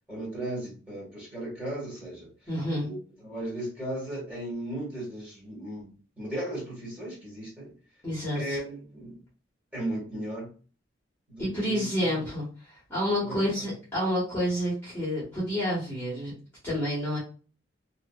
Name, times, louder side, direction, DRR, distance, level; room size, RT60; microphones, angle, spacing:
voice 1, 0.1-2.3 2.8-7.7 8.3-9.2 9.7-10.5 11.3-11.9 13.2-13.6, right 1 dB, 10° right, -6 dB, 1.5 m, -36 dB
voice 2, 2.5-2.9 8.0-8.6 11.4-16.3 16.6-17.2, equal, 10° left, -10 dB, 1.2 m, -29 dB
2.7 x 2.6 x 2.2 m, 0.37 s
head